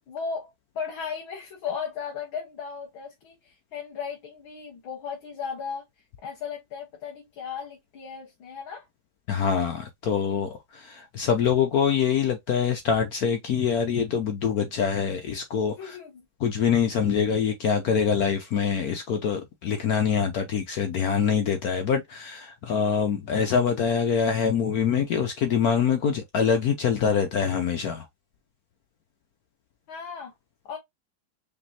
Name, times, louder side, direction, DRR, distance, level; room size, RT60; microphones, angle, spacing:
voice 1, 0.1-0.5 0.8-5.8 6.2-8.9 15.8-16.2 29.9-30.3 30.7-30.8, left 6 dB, 85° left, 2.2 m, -36 dB
voice 2, 9.3-16.0 16.4-28.1, left 7 dB, 60° left, 1.0 m, -25 dB
5.2 x 3.0 x 2.7 m
omnidirectional pair, 2.1 m